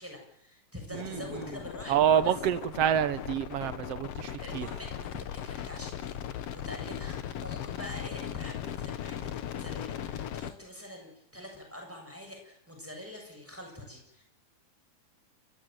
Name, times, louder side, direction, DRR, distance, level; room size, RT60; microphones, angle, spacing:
voice 1, 0.0-2.3 4.4-14.2, left 1 dB, 5° right, 7.3 m, -45 dB
sound 1, 0.9-10.5, left 10 dB, 65° left, 1.5 m, -38 dB
voice 2, 1.9-4.7, right 9 dB, 70° right, 1.4 m, -27 dB
29.5 x 15.0 x 9.1 m
omnidirectional pair, 4.2 m